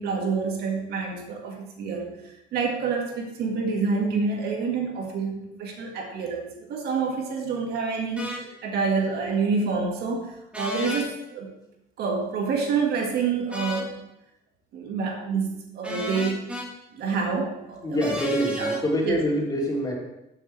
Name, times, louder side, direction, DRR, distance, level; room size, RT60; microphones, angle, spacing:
voice 1, 0.0-8.3 8.6-11.5 12.0-13.9 14.7-16.5 16.9-18.1 18.6-18.7 19.0-19.2, right 5 dB, 70° right, 1 dB, 2.0 m, -27 dB
sound 1, 8.2-8.4 10.5-11.1 13.5-13.9 15.8-16.7 18.0-18.8, equal, 5° right, 2.0 m, -31 dB
voice 2, 17.8-19.9, equal, 20° left, -3 dB, 3.2 m, -25 dB
13.5 x 6.7 x 3.4 m, 0.88 s
cardioid pair, 110°, 17 cm